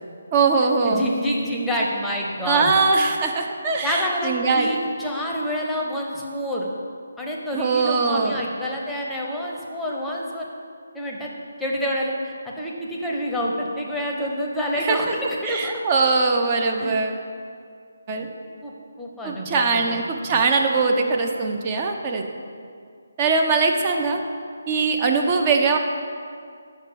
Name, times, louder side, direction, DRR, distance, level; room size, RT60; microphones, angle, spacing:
voice 1, 0.3-1.1 2.4-4.7 7.5-8.5 14.8-15.1 15.4-17.2 18.1-18.3 19.2-22.2 23.2-24.2 24.7-25.8, right 4 dB, 25° right, 3 dB, 0.8 m, -21 dB
voice 2, 0.8-2.7 3.8-6.7 7.2-10.5 10.9-11.3 11.6-15.8 16.8-17.0 18.2-18.3 18.6-20.4, equal, 5° left, -3 dB, 0.9 m, -28 dB
6.5 x 5.9 x 6.7 m, 2.2 s
figure-of-eight pair, 150°, 0 cm